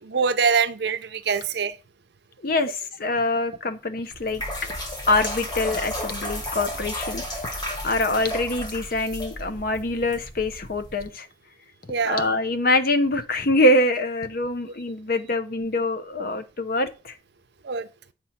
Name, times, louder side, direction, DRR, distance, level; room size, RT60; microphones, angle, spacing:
voice 1, 0.0-1.8 11.9-12.3 17.6-17.9, right 5 dB, 60° right, 0.6 m, -24 dB
voice 2, 2.4-4.4 5.1-7.2 7.8-11.3 12.1-17.1, left 2 dB, 50° left, 0.7 m, -24 dB
sound 1, 4.1-11.1, left 1 dB, 20° left, 1.8 m, -33 dB
7.7 x 2.9 x 5.8 m
head